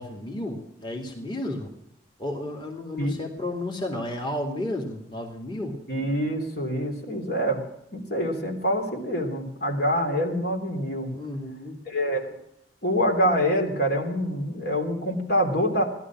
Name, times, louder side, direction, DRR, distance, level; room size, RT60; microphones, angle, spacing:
voice 1, 0.0-1.7 2.2-5.7 11.1-11.8, left 1 dB, 25° left, 0 dB, 2.5 m, -32 dB
voice 2, 5.9-7.6 7.9-11.1 11.8-12.3 12.8-15.8, equal, 60° left, 2 dB, 3.4 m, -25 dB
17.5 x 12.5 x 6.1 m, 0.77 s
head